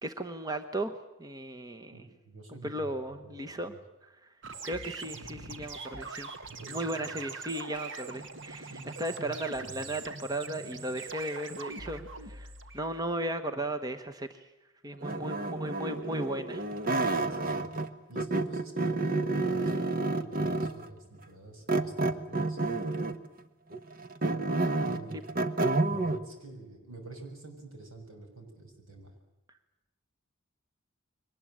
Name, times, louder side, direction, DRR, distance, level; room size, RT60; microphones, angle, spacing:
voice 1, 0.0-2.1 2.6-3.7 4.2-4.3 4.6-6.3 6.7-8.7 9.0-14.5 14.8-16.6, right 1 dB, 20° right, 7 dB, 1.1 m, -36 dB
voice 2, 1.9-3.0 3.2-3.8 6.6-7.2 8.6-10.0 15.1-15.2 17.0-17.7 18.1-22.6 24.8-25.2 25.9-29.1, right 2 dB, 85° right, 3 dB, 6.8 m, -48 dB
sound 1, 4.4-13.1, right 3 dB, 60° right, 1.8 m, -42 dB
sound 2, 15.0-17.9 18.2-20.9 21.7-23.3 23.7-26.2, right 2 dB, 45° right, 1.3 m, -30 dB
23.0 x 19.5 x 9.0 m, 0.98 s
head